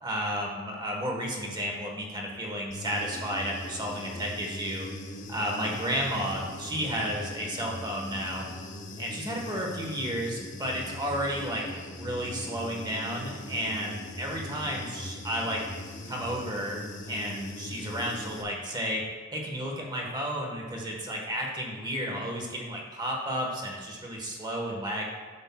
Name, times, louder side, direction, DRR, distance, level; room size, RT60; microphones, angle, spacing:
voice 1, 0.0-4.9 5.3-8.4 9.0-15.7 16.0-19.0 19.3-25.1, equal, 20° right, -1 dB, 1.1 m, -32 dB
Human voice / Buzz, 2.7-18.4, left 1 dB, 35° left, 0.6 m, -40 dB
9.7 x 7.0 x 2.2 m, 1.4 s
head